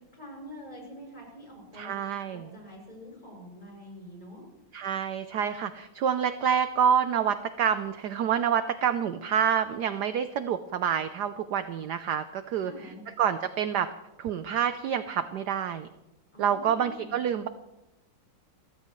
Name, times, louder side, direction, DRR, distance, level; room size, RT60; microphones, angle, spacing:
voice 1, 0.0-1.9 2.3-4.4 12.6-13.1 16.3-17.1, left 1 dB, 20° left, -1 dB, 6.9 m, -46 dB
voice 2, 1.7-2.6 4.7-13.9 14.2-15.9 16.4-17.5, right 8 dB, 65° right, 10 dB, 1.1 m, -28 dB
30.0 x 15.5 x 3.1 m, 0.97 s
omnidirectional pair, 2.3 m